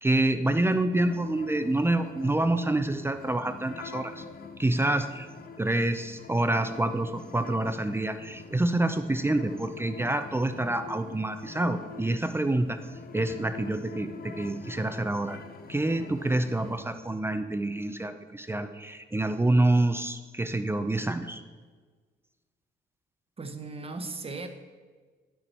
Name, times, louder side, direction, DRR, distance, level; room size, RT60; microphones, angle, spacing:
voice 1, 0.0-4.2 4.6-5.3 5.6-12.8 13.1-15.4 15.7-21.4, right 2 dB, 10° right, 8 dB, 0.5 m, -27 dB
sound 1, 0.9-16.8, left 4 dB, 50° left, 0.8 m, -45 dB
voice 2, 23.4-24.5, right 3 dB, 30° right, 7 dB, 1.0 m, -37 dB
9.8 x 6.9 x 4.4 m, 1.4 s
cardioid pair, 90°, 20 cm